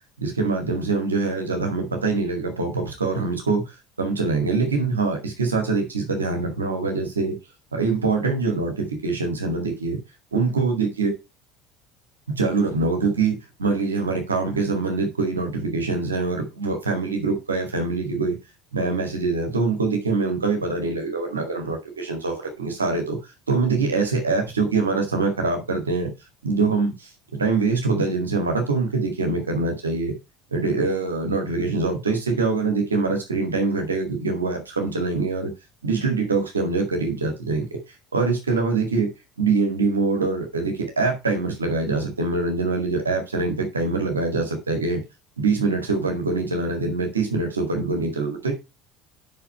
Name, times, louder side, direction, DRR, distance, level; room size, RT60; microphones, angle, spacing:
voice 1, 0.2-7.4 7.7-10.0 10.3-11.1 12.4-18.4 18.7-23.2 23.5-26.1 26.4-30.2 30.5-35.5 35.8-37.6 38.1-39.1 39.4-45.0 45.4-48.5, right 3 dB, 80° right, 3 dB, 2.0 m, -24 dB
5.9 x 5.8 x 5.7 m, 0.25 s
figure-of-eight pair, 65°, 0 cm